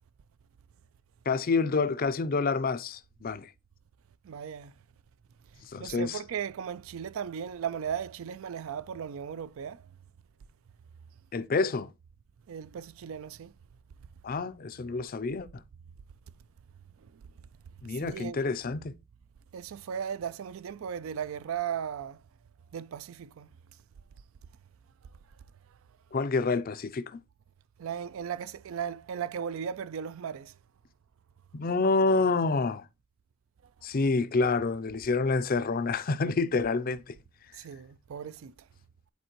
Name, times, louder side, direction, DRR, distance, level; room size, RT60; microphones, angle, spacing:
voice 1, 1.3-3.5 5.7-6.2 11.3-11.9 14.2-15.5 17.8-18.9 26.1-27.2 31.5-32.9 33.8-37.2, left 3 dB, 40° left, 0.5 m, -28 dB
voice 2, 4.2-4.7 5.8-9.9 12.5-13.5 17.0-17.2 17.8-18.4 19.5-22.2 22.7-23.5 27.8-30.5 37.5-38.5, right 8 dB, 65° right, 0.3 m, -36 dB
10.5 x 4.3 x 2.9 m
head